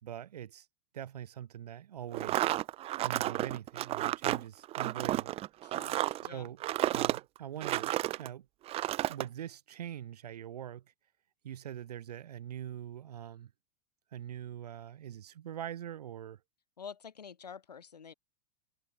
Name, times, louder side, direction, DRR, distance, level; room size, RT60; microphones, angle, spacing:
voice 1, 0.0-0.7 0.9-2.6 3.0-5.3 6.3-6.6 6.9-8.5 9.1-10.8 11.4-13.5 14.1-16.4, right 10 dB, 80° right, 2.1 m, -43 dB
sound 1, 2.1-8.3 8.7-9.3, right 15 dB, 30° right, 0.5 m, -32 dB
voice 2, 5.6-6.5 16.8-18.1, left 6 dB, 90° left, 3.9 m, -48 dB
hypercardioid pair, 100°, 20 cm